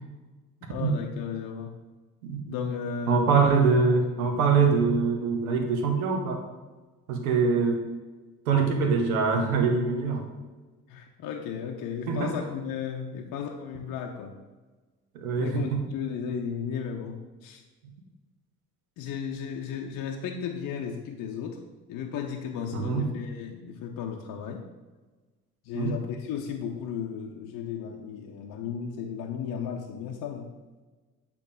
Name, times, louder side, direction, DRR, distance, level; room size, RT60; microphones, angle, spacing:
voice 1, 0.7-1.8 2.5-3.2 10.9-14.4 15.4-17.6 19.0-21.6 21.9-24.7 25.6-30.5, left 7 dB, 45° left, 2 dB, 0.7 m, -34 dB
voice 2, 3.1-6.4 7.1-7.9 8.5-10.3 12.1-12.3 15.1-15.8 22.7-23.0 25.7-25.9, right 5 dB, 70° right, 4 dB, 1.0 m, -24 dB
8.3 x 3.0 x 5.0 m, 1.3 s
figure-of-eight pair, 50°, 44 cm